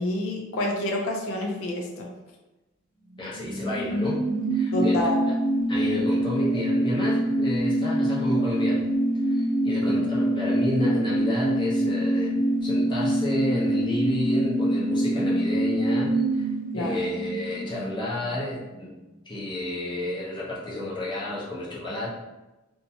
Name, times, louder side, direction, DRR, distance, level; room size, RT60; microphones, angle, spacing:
voice 1, 0.0-2.1 4.7-5.2 16.7-17.1, left 1 dB, 90° left, 0 dB, 0.5 m, -28 dB
voice 2, 3.2-4.2 4.5-5.0 5.7-8.8 9.3-9.4 9.6-18.9 19.3-22.1, left 1 dB, 25° left, -7 dB, 0.8 m, -31 dB
sound 1, 3.2-18.4 18.7-18.8, right 1 dB, ahead, 1.1 m, -25 dB
2.6 x 2.2 x 2.8 m, 1.1 s
head